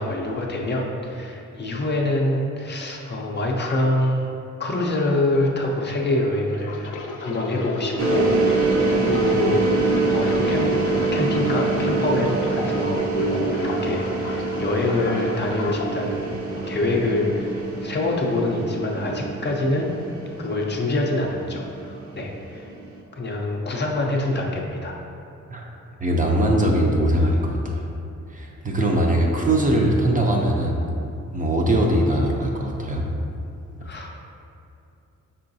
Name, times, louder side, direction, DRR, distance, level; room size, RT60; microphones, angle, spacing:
voice 1, 0.0-4.3 4.6-6.9 7.2-10.7 11.1-16.4 16.7-19.9 20.4-22.7 23.1-25.0 33.8-34.1, left 2 dB, 35° left, 0 dB, 0.5 m, -25 dB
man urinating, 6.5-13.0 13.4-15.9 16.6-16.8, left 2 dB, 85° left, 0.5 m, -32 dB
sound 1, 8.0-22.9, right 3 dB, 65° right, 0.7 m, -25 dB
voice 2, 26.0-27.9 28.3-30.8 31.3-33.1, right 1 dB, 25° right, -1 dB, 0.5 m, -21 dB
5.5 x 3.7 x 2.6 m, 2.6 s
wide cardioid pair, 120°, 30 cm